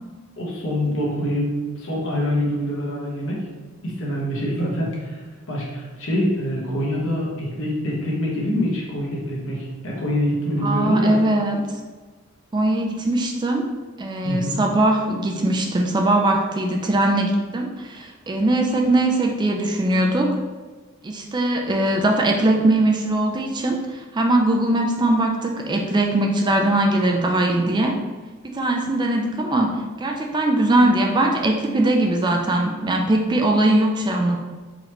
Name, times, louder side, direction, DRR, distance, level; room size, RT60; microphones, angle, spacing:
voice 1, 0.4-3.5 3.8-5.2 5.5-11.2 14.2-14.6, equal, 65° left, -4 dB, 1.1 m, -25 dB
voice 2, 10.6-11.8 12.5-13.6 14.0-20.3 21.0-28.0 28.4-34.4, right 1 dB, 20° right, 2 dB, 0.3 m, -20 dB
3.9 x 3.1 x 2.9 m, 1.3 s
head